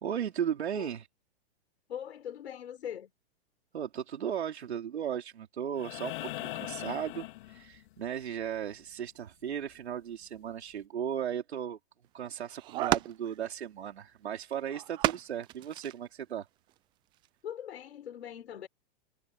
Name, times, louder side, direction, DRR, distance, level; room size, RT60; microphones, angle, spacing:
voice 1, 0.0-1.1 3.7-11.8 12.1-16.5, right 9 dB, 90° right, 3.9 m, -36 dB
voice 2, 1.9-3.1 17.4-18.7, left 9 dB, 80° left, 4.9 m, -41 dB
sound 1, 5.8-8.1 9.9-10.0, left 18 dB, 50° left, 3.9 m, -40 dB
sound 2, 12.0-12.1 12.5-13.4 14.7-15.9 16.7-16.8 17.3-17.4, right 16 dB, 15° right, 0.4 m, -32 dB
hypercardioid pair, 145°, 32 cm